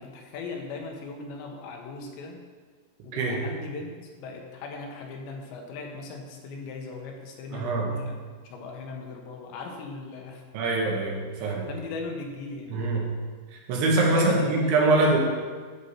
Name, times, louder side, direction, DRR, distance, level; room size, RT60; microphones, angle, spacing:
voice 1, 0.0-2.4 3.0-3.9 4.2-8.2 8.4-10.4 11.6-12.8 14.0-14.7, left 4 dB, 75° left, 2 dB, 3.2 m, -38 dB
voice 2, 7.5-8.0 10.5-11.7 12.7-13.1 13.5-15.2, right 2 dB, 80° right, -1 dB, 3.9 m, -24 dB
11.0 x 8.5 x 4.4 m, 1.5 s
omnidirectional pair, 5.4 m